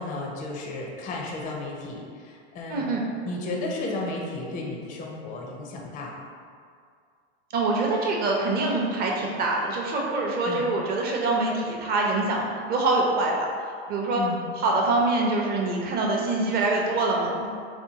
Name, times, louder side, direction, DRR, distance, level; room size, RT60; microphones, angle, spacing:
voice 1, 0.0-2.9 3.2-6.3 10.4-10.7 14.2-14.4, left 2 dB, 25° left, -1 dB, 0.4 m, -33 dB
voice 2, 2.7-3.0 7.5-13.5 13.9-14.2 14.6-17.5, right 2 dB, 30° right, -1 dB, 0.6 m, -25 dB
4.3 x 2.2 x 2.7 m, 2.2 s
hypercardioid pair, 120°, 33 cm